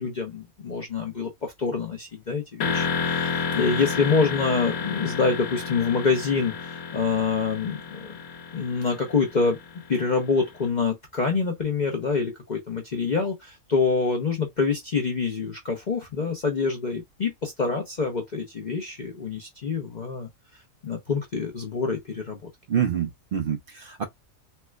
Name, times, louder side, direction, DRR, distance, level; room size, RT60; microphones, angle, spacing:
voice 1, 0.0-8.2 8.5-9.6 9.9-20.3 20.8-22.4, left 4 dB, 45° left, 0.6 m, -26 dB
sound 1, 2.6-10.4, left 5 dB, 80° left, 1.3 m, -31 dB
voice 2, 22.7-24.0, right 8 dB, 60° right, 0.6 m, -27 dB
4.3 x 2.2 x 2.2 m
omnidirectional pair, 1.5 m